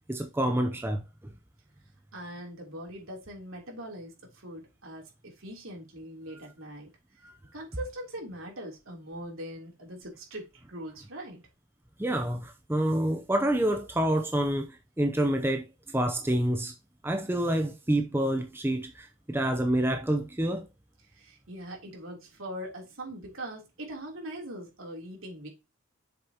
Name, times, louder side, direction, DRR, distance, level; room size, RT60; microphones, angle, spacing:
voice 1, 0.1-1.0 7.2-7.3 12.0-16.7 17.0-20.6, right 1 dB, 10° right, 0.6 m, -28 dB
voice 2, 2.1-6.9 7.5-11.4 21.1-25.5, right 1 dB, 70° right, 3.3 m, -41 dB
7.7 x 6.8 x 2.9 m
head